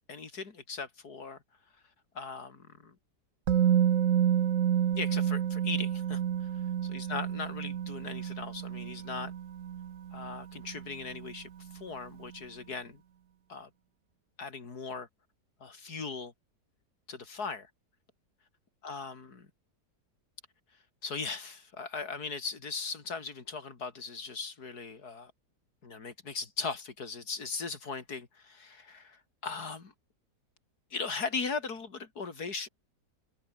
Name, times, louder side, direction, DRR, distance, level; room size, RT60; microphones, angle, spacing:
voice 1, 0.1-1.4 2.1-2.9 4.9-6.5 6.8-9.3 10.1-13.0 13.5-13.7 14.4-15.1 15.6-16.3 17.1-17.7 18.8-19.5 21.0-25.3 25.8-29.9 30.9-32.7, left 4 dB, 65° left, 3.3 m, -39 dB
Musical instrument, 3.5-11.4 11.6-11.8, right 9 dB, 55° right, 1.2 m, -30 dB
omnidirectional pair, 1.8 m